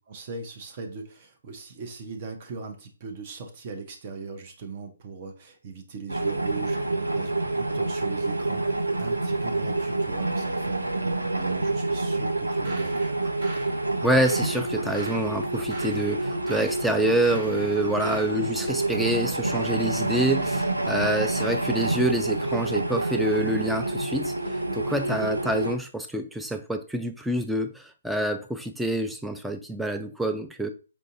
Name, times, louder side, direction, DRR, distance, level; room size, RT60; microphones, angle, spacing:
voice 1, 0.1-13.1, right 4 dB, 35° right, 4 dB, 0.6 m, -40 dB
sound 1, 6.1-25.8, right 2 dB, 85° right, 0.5 m, -27 dB
sound 2, 12.5-18.4, right 1 dB, 55° right, 1.2 m, -42 dB
voice 2, 14.0-24.3 24.7-30.7, right 1 dB, ahead, 6 dB, 0.3 m, -27 dB
4.5 x 2.5 x 2.6 m, 0.34 s
figure-of-eight pair, 135°, 0 cm